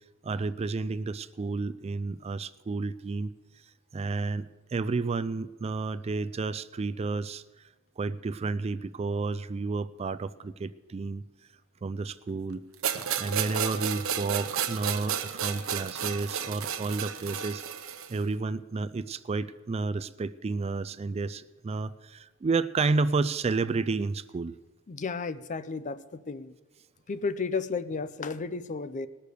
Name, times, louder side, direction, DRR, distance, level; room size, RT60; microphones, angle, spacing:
voice 1, 0.2-3.3 3.9-7.4 8.0-11.2 11.8-12.6 13.2-24.6, right 3 dB, 30° right, 14 dB, 0.3 m, -31 dB
sound 1, 12.8-18.2, right 8 dB, 75° right, 0.8 m, -32 dB
voice 2, 24.9-26.5 27.1-29.1, left 4 dB, 35° left, 14 dB, 0.5 m, -33 dB
19.0 x 6.6 x 6.7 m, 1.2 s
head